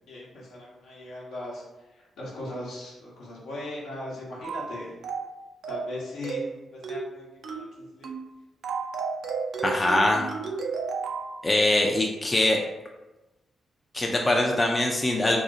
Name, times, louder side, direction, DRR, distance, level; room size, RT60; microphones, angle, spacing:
voice 1, 0.1-1.6 1.9-4.9 5.7-8.1, left 1 dB, 75° left, -5 dB, 0.7 m, -39 dB
sound 1, 4.4-4.7 5.0-5.3 5.6-5.9 6.2-6.5 6.8-7.1 7.4-7.7 8.0-8.3 8.6-11.3, right 5 dB, 70° right, 0.3 m, -32 dB
voice 2, 9.6-10.2 11.4-12.6 13.9-15.4, left 1 dB, 30° left, 0 dB, 0.3 m, -23 dB
2.6 x 2.0 x 2.6 m, 1.0 s
hypercardioid pair, 40°, 0 cm